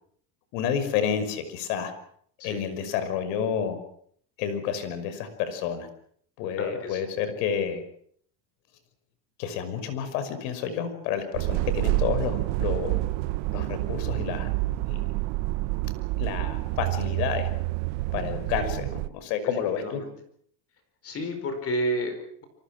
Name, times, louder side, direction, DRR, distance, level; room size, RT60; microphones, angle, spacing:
voice 1, 0.5-1.9 2.4-3.8 4.4-5.9 6.4-7.8 9.4-12.9 13.5-14.5 14.8-15.0 16.2-17.5 18.1-18.8 19.1-20.0, left 8 dB, 80° left, 11 dB, 5.8 m, -29 dB
voice 2, 6.6-7.0 18.6-18.7 19.4-20.1 21.0-22.4, equal, 30° left, 7 dB, 4.7 m, -31 dB
sound 1, 11.3-19.1, right 19 dB, 60° right, 1.0 m, -28 dB
28.0 x 24.5 x 6.1 m, 0.63 s
cardioid pair, 175°, 49 cm